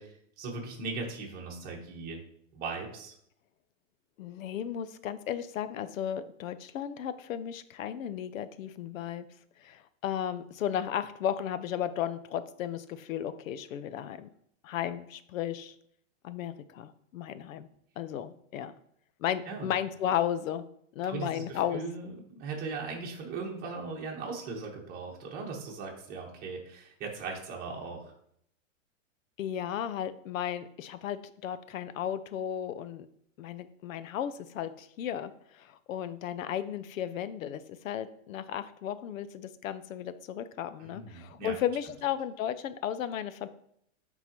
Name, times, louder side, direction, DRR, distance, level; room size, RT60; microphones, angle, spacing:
voice 1, 0.0-2.2 2.5-3.1 19.5-19.7 21.1-28.1 40.8-41.6, right 4 dB, 25° right, -1 dB, 1.4 m, -39 dB
voice 2, 4.2-9.3 9.6-14.3 14.6-15.7 16.2-17.7 18.0-18.7 19.2-20.6 21.0-21.8 29.4-33.1 33.4-35.3 35.6-43.5, left 10 dB, 85° left, 13 dB, 0.6 m, -34 dB
9.6 x 3.9 x 3.0 m, 0.70 s
supercardioid pair, 155°, 39 cm